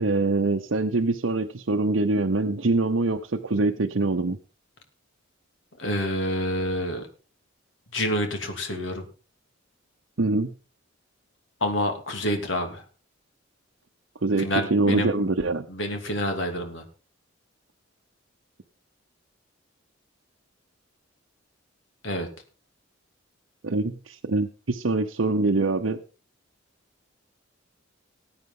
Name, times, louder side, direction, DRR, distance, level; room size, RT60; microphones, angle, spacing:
voice 1, 0.0-4.4 10.2-10.5 14.2-15.7 23.6-26.0, right 2 dB, 70° right, 4 dB, 0.8 m, -24 dB
voice 2, 5.8-7.1 7.9-9.0 11.6-12.8 14.4-15.3 15.7-16.8 22.0-22.3, equal, 70° left, 5 dB, 2.8 m, -28 dB
19.0 x 8.9 x 3.8 m, 0.35 s
head